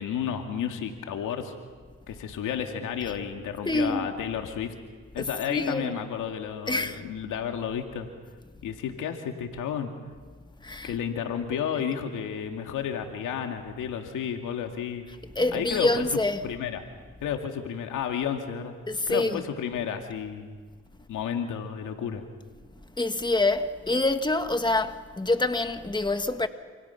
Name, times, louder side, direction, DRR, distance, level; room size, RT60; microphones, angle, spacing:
voice 1, 0.0-1.5 2.1-4.7 5.1-8.1 8.6-9.9 10.8-15.1 15.5-16.8 17.2-18.7 19.1-20.6 21.1-22.2, left 8 dB, 90° left, 2.3 m, -32 dB
voice 2, 3.6-4.1 5.2-5.9 6.7-7.0 10.6-10.9 15.3-16.4 18.9-19.4 23.0-26.5, left 2 dB, 15° left, 1.7 m, -26 dB
28.0 x 27.5 x 5.9 m
supercardioid pair, 60°, 30 cm